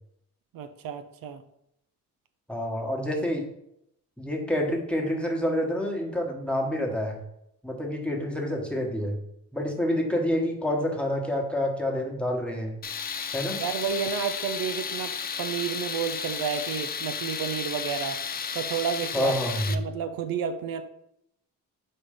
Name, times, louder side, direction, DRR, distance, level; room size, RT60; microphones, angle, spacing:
voice 1, 0.5-1.4 13.6-18.2 18.5-19.3 19.7-20.8, right 7 dB, 80° right, 9 dB, 0.6 m, -31 dB
voice 2, 2.5-3.5 4.2-7.2 7.6-9.2 9.5-12.8 13.3-13.6 19.1-19.8, left 1 dB, 5° left, 0 dB, 1.2 m, -28 dB
Tools, 12.8-19.7, left 6 dB, 30° left, 0.4 m, -33 dB
4.9 x 4.4 x 5.0 m, 0.79 s
cardioid pair, 110°, 34 cm